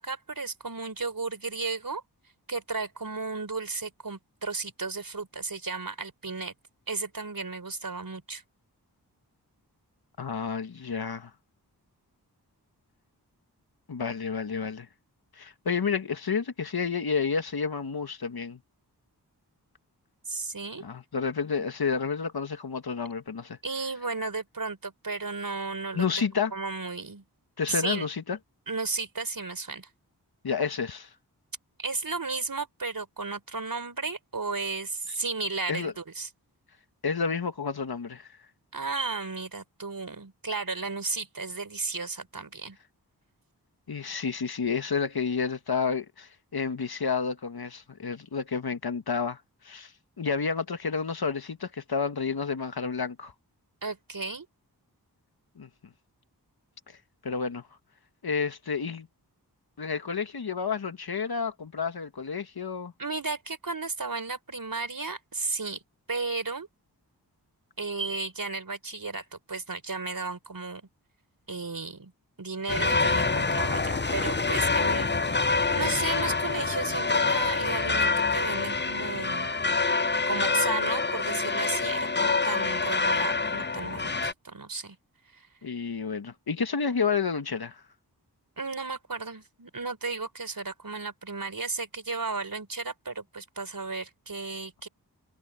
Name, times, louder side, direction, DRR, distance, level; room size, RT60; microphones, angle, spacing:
voice 1, 0.0-2.0 2.5-6.5 6.9-8.4 20.3-20.8 23.6-26.0 26.5-27.2 27.7-28.1 28.7-29.9 31.8-36.3 38.7-42.8 53.8-54.5 63.0-65.8 66.1-66.7 67.8-70.8 71.5-72.1 72.4-75.5 75.7-79.5 80.3-85.0 85.3-85.5 88.6-94.9, right 3 dB, 55° right, 5.0 m, -34 dB
voice 2, 10.2-11.3 13.9-14.9 15.3-18.6 20.8-23.6 25.9-26.5 27.6-28.4 30.4-31.1 35.7-35.9 37.0-38.4 43.9-49.9 50.2-53.3 55.6-55.7 57.2-57.6 58.2-59.1 59.8-62.9 85.6-87.8, left 5 dB, 65° left, 1.7 m, -30 dB
sound 1, 72.7-84.3, left 3 dB, 25° left, 0.9 m, -26 dB
cardioid pair, 45°, 40 cm